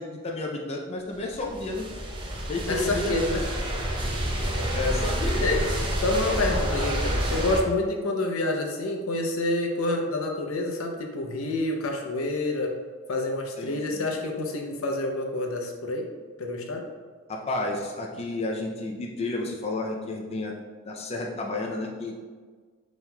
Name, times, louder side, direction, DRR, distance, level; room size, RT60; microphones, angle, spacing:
voice 1, 0.0-1.9 2.5-3.2 4.7-5.5 13.6-14.1 17.3-20.5 20.8-22.2, left 2 dB, 30° left, -1 dB, 0.4 m, -31 dB
sound 1, 1.2-7.6, equal, 25° right, 0.5 m, -28 dB
voice 2, 2.7-3.4 5.4-5.7 6.0-12.8 13.1-16.1 16.4-16.8, left 2 dB, 75° left, 2 dB, 0.6 m, -28 dB
5.5 x 3.0 x 2.2 m, 1.5 s
head